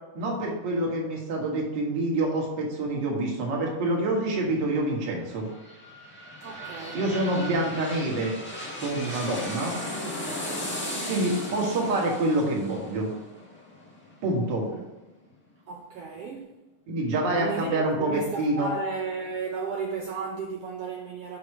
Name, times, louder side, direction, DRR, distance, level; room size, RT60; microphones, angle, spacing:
voice 1, 0.1-5.5 6.9-8.4 8.7-9.8 11.1-13.1 14.2-14.7 16.9-18.7, right 2 dB, 40° right, 2.1 m, -27 dB
sound 1, 5.2-14.9 15.3-15.4, left 1 dB, 10° left, 0.5 m, -36 dB
voice 2, 6.4-7.0 14.6-14.9 15.7-16.5 17.4-21.4, right 5 dB, 80° right, 1.4 m, -34 dB
6.6 x 6.0 x 6.0 m
omnidirectional pair, 3.7 m